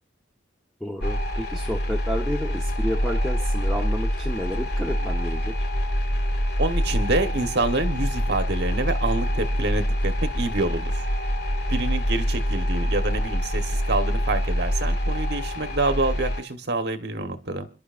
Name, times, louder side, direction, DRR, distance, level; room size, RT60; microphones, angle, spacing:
voice 1, 0.8-5.7, equal, ahead, 0 dB, 1.1 m, -31 dB
sound 1, 1.0-16.4, equal, 55° left, 1.6 m, -25 dB
voice 2, 6.6-11.0 11.7-17.7, right 2 dB, 55° right, 7 dB, 1.3 m, -27 dB
29.0 x 11.0 x 2.6 m, 0.31 s
head